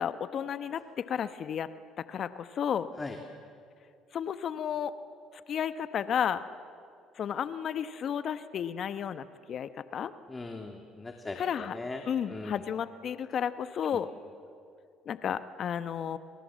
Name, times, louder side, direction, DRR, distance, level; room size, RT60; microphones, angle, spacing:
voice 1, 0.0-1.7 2.0-2.9 4.1-4.9 5.5-6.4 7.2-10.1 11.4-11.8 12.1-14.1 15.1-16.2, left 8 dB, 55° left, 12 dB, 1.0 m, -32 dB
voice 2, 10.3-12.0 12.3-12.5, left 3 dB, 20° left, 3 dB, 2.7 m, -39 dB
29.0 x 27.0 x 7.5 m, 2.3 s
supercardioid pair, 70°, 0 cm